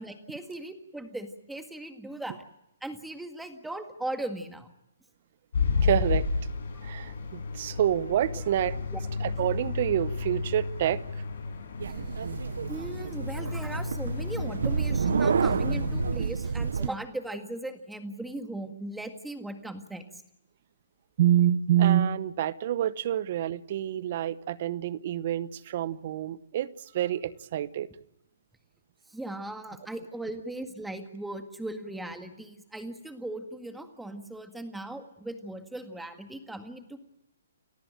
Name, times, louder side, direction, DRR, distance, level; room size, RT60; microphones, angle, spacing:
voice 1, 0.0-2.5 2.8-4.7 6.7-6.9 8.3-8.4 8.9-9.0 12.7-20.0 29.1-37.0, right 1 dB, 5° right, 7 dB, 1.8 m, -38 dB
sound 1, 5.5-16.2, left 4 dB, 70° left, 7.7 m, -32 dB
voice 2, 5.8-6.3 6.8-8.8 9.2-11.2 21.2-26.7 26.9-27.9, right 11 dB, 45° right, 17 dB, 1.0 m, -27 dB
sound 2, 11.8-16.9, right 6 dB, 75° right, 0.8 m, -29 dB
29.5 x 15.0 x 9.0 m, 0.84 s
hypercardioid pair, 150°, 0 cm